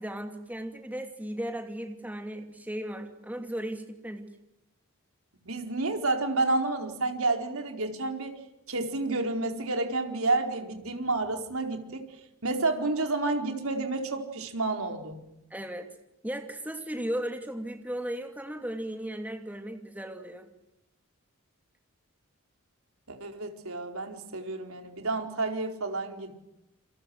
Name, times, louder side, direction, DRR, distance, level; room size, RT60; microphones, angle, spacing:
voice 1, 0.0-4.3 15.5-15.9 16.2-20.5, right 1 dB, 5° right, 5 dB, 2.7 m, -36 dB
voice 2, 5.4-8.3 8.7-12.0 12.4-15.2 23.1-26.3, right 2 dB, 75° right, 4 dB, 4.5 m, -30 dB
28.5 x 26.5 x 7.9 m, 0.88 s
head